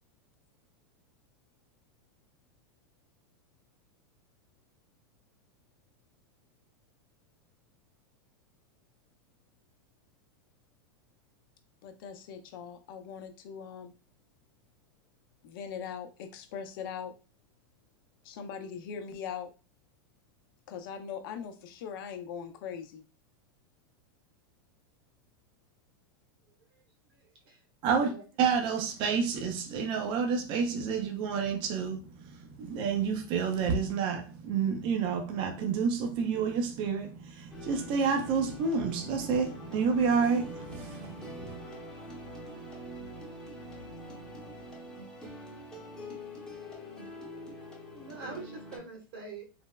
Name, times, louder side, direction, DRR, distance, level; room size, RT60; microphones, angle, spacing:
voice 1, 11.8-13.9 15.4-17.1 18.2-19.5 20.7-23.0, left 7 dB, 65° left, 0.5 m, -40 dB
voice 2, 26.4-27.6 27.8-28.2 47.9-49.5, right 4 dB, 75° right, 1.3 m, -45 dB
voice 3, 28.4-41.6, right 6 dB, 40° right, 0.5 m, -29 dB
sound 1, 37.5-48.8, equal, 5° left, 0.8 m, -44 dB
3.2 x 2.0 x 2.2 m
supercardioid pair, 135°, 12 cm